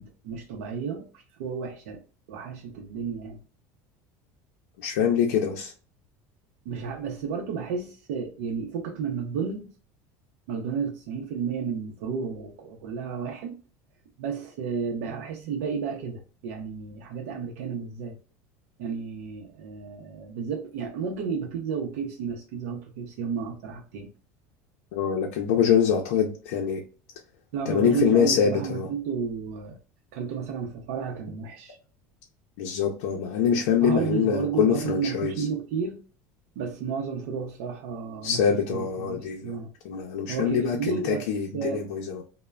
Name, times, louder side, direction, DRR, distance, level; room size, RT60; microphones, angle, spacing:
voice 1, 0.0-2.0 2.3-3.4 6.6-9.8 10.5-13.6 14.2-18.2 18.8-24.1 27.5-29.8 30.1-31.8 33.8-36.0 36.6-39.7 40.3-41.3 41.5-41.8, right 6 dB, 85° right, 0.5 m, -32 dB
voice 2, 4.8-5.7 24.9-26.8 27.7-28.9 32.6-35.5 38.2-39.6 39.8-42.2, left 7 dB, 85° left, 0.5 m, -24 dB
3.1 x 2.1 x 2.3 m
cardioid pair, 180°, 8 cm